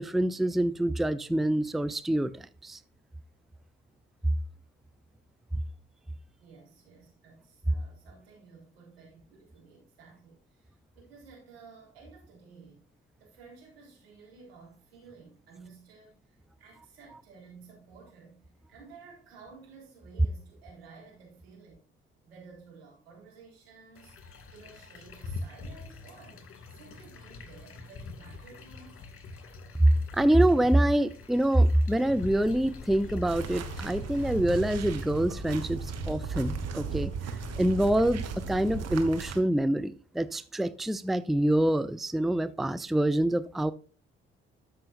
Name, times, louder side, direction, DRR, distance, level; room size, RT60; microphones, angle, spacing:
voice 1, 0.0-2.8 30.1-35.8 36.1-37.1 37.6-43.7, right 1 dB, ahead, 0.5 m, -26 dB
voice 2, 6.4-12.9 13.2-21.8 22.2-29.0, right 4 dB, 85° right, 3.7 m, -53 dB
sound 1, 24.0-34.4, left 3 dB, 45° left, 2.1 m, -45 dB
sound 2, 32.2-39.4, left 5 dB, 25° left, 0.9 m, -43 dB
sound 3, 33.2-39.4, right 7 dB, 60° right, 1.5 m, -37 dB
13.0 x 5.7 x 2.5 m
hypercardioid pair, 45°, 30 cm